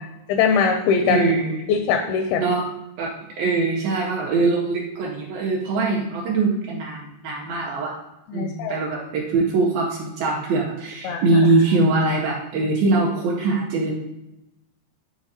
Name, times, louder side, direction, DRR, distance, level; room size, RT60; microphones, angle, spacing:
voice 1, 0.3-1.3 1.7-2.4 8.3-8.7 11.0-11.2, left 6 dB, 80° left, 5 dB, 2.3 m, -21 dB
voice 2, 1.1-1.6 2.4-2.6 3.0-7.9 8.3-13.9, right 3 dB, 75° right, -3 dB, 2.3 m, -22 dB
10.5 x 3.7 x 2.8 m, 0.93 s
omnidirectional pair, 4.7 m